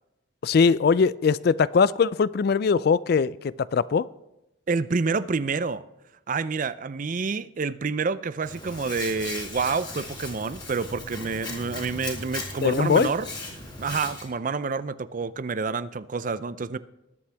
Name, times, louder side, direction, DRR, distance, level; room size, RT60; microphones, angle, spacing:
voice 1, 0.4-4.1 12.6-13.1, left 5 dB, 50° left, 0.3 m, -21 dB
voice 2, 4.7-5.8 6.3-13.3 13.8-16.8, right 4 dB, 40° right, 0.4 m, -28 dB
Hands, 8.4-14.2, left 2 dB, 20° left, 2.9 m, -37 dB
20.5 x 8.6 x 3.4 m
head